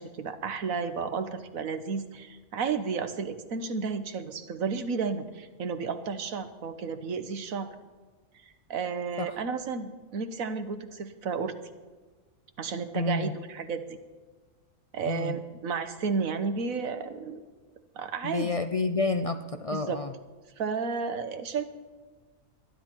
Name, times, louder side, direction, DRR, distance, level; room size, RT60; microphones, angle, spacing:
voice 1, 0.0-7.7 8.7-11.6 12.6-13.8 14.9-17.4 17.9-18.6 19.7-20.0 20.6-21.6, right 5 dB, 85° right, 9 dB, 1.5 m, -32 dB
voice 2, 12.9-13.3 15.1-15.4 18.2-20.1, left 3 dB, 50° left, 8 dB, 0.4 m, -29 dB
24.0 x 10.5 x 4.5 m, 1.3 s
omnidirectional pair, 1.4 m